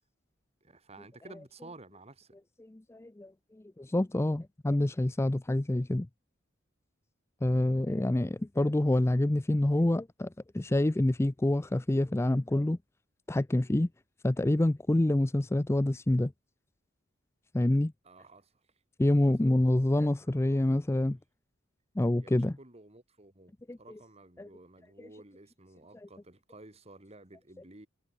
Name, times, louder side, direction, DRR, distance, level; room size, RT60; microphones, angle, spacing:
voice 1, 0.6-2.4 18.0-18.5 19.9-21.2 22.2-23.5 23.8-27.9, right 2 dB, 30° right, 2.4 m, -53 dB
voice 2, 2.6-3.3 3.8-6.1 7.4-12.8 13.3-13.9 14.2-16.3 17.5-17.9 19.0-21.2 22.0-22.6 23.7-24.0 24.4-24.5 25.0-25.1 25.9-26.1, left 1 dB, 15° left, 0.4 m, -27 dB
head